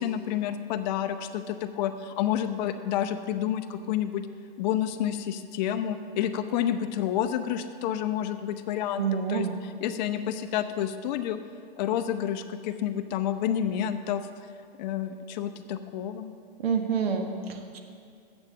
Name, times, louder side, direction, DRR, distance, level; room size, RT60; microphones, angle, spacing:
voice 1, 0.0-4.2 4.6-11.4 11.8-14.2 14.8-16.3, left 10 dB, 45° left, 9 dB, 0.7 m, -29 dB
voice 2, 9.0-9.5 16.6-17.8, right 6 dB, 75° right, 5 dB, 1.3 m, -28 dB
7.8 x 7.2 x 7.2 m, 2.3 s
hypercardioid pair, 135°, 30 cm